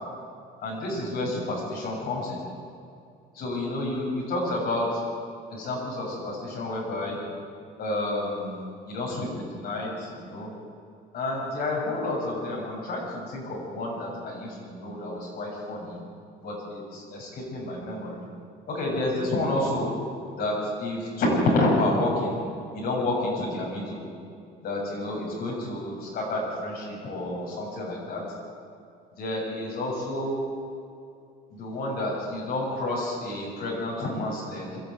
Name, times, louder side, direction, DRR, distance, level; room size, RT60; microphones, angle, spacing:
voice 1, 0.6-2.4 3.3-5.0 5.5-7.2 7.8-10.5 11.1-16.0 16.4-18.3 18.7-19.9 20.3-22.4 22.7-24.1 24.6-28.2 29.2-30.4 31.5-34.8, left 1 dB, 65° left, -3 dB, 7.1 m, -29 dB
22.0 x 13.0 x 9.3 m, 2.5 s
cardioid pair, 110°, 17 cm